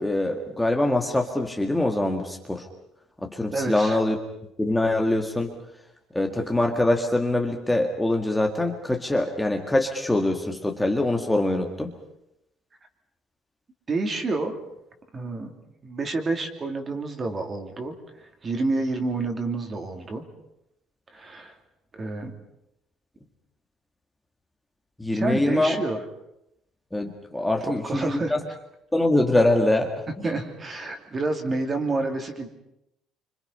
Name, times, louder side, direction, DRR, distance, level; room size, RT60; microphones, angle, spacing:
voice 1, 0.0-2.7 3.2-4.2 4.6-5.5 6.1-11.9 25.0-25.8 26.9-28.4 28.9-29.9, left 1 dB, 5° left, 1 dB, 1.9 m, -24 dB
voice 2, 3.5-4.0 13.9-14.5 15.1-15.5 15.8-20.2 21.1-21.6 21.9-22.3 25.1-26.0 27.6-28.3 30.2-32.5, right 3 dB, 25° right, 5 dB, 2.8 m, -29 dB
28.5 x 26.0 x 5.6 m, 0.83 s
cardioid pair, 150°, 0 cm